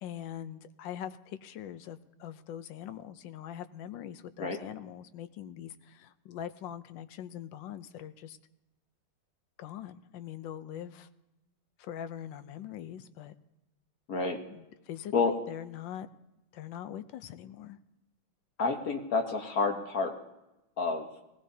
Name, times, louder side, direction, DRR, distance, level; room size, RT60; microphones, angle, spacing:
voice 1, 0.0-8.4 9.6-11.1 11.8-13.3 14.5-16.1 16.5-17.8, left 10 dB, 75° left, 13 dB, 1.3 m, -42 dB
voice 2, 14.1-14.4 15.1-15.3 18.6-20.1 20.8-21.1, left 4 dB, 55° left, 4 dB, 1.3 m, -29 dB
19.5 x 17.0 x 2.7 m, 0.96 s
omnidirectional pair, 2.2 m